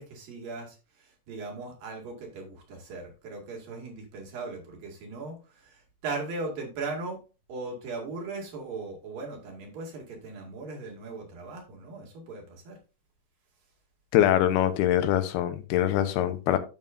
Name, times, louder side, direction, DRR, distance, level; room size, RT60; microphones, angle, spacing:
voice 1, 0.0-7.2 7.5-12.8, right 3 dB, 65° right, 3.8 m, -38 dB
voice 2, 14.1-16.6, left 11 dB, 85° left, 2.8 m, -23 dB
10.5 x 7.3 x 2.5 m
omnidirectional pair, 4.5 m